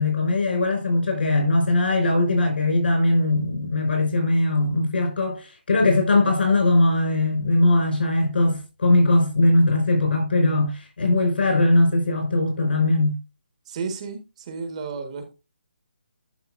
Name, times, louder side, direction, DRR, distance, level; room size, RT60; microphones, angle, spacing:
voice 1, 0.0-13.2, left 2 dB, 70° left, 5.0 m, -20 dB
voice 2, 13.6-15.3, right 5 dB, 40° right, 1.5 m, -32 dB
11.5 x 5.7 x 2.5 m
hypercardioid pair, 155°, 6 cm